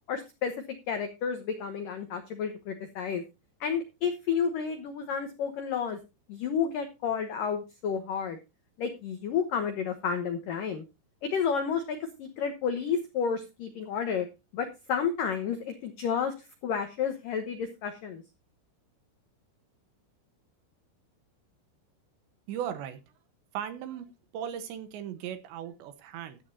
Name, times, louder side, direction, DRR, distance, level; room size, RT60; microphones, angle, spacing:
voice 1, 0.1-0.6 0.9-3.2 3.6-6.0 6.3-8.4 8.8-10.8 11.2-14.3 14.5-16.3 16.6-18.2, left 6 dB, 85° left, 7 dB, 1.9 m, -31 dB
voice 2, 22.5-23.0 23.5-24.1 24.3-26.4, right 9 dB, 75° right, 10 dB, 3.1 m, -37 dB
13.5 x 10.5 x 2.7 m, 0.26 s
omnidirectional pair, 5.7 m